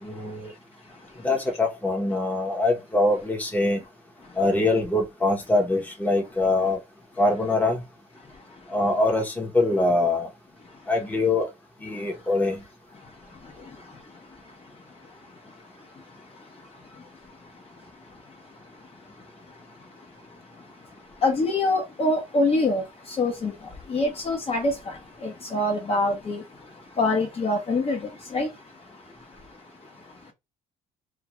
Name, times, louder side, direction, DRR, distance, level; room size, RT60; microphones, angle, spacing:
voice 1, 0.0-0.5 1.2-3.8 4.4-6.8 7.2-7.8 8.7-10.3 10.9-11.5 11.8-12.6, left 2 dB, 10° left, 0.9 m, -23 dB
voice 2, 21.2-22.8 23.2-23.5 23.9-25.0 25.2-26.4 27.0-28.5, left 2 dB, 35° left, 0.8 m, -24 dB
2.4 x 2.3 x 2.9 m
cardioid pair, 110°, 17 cm